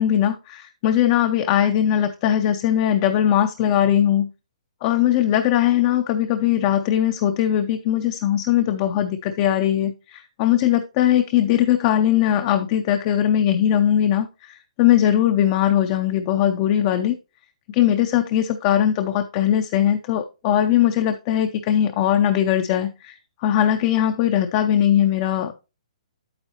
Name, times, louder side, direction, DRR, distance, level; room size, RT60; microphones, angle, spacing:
voice 1, 0.0-4.3 4.8-17.2 17.7-25.7, left 11 dB, 25° left, 0.4 m, -20 dB
8.9 x 7.8 x 2.9 m
hypercardioid pair, 165°, 4 cm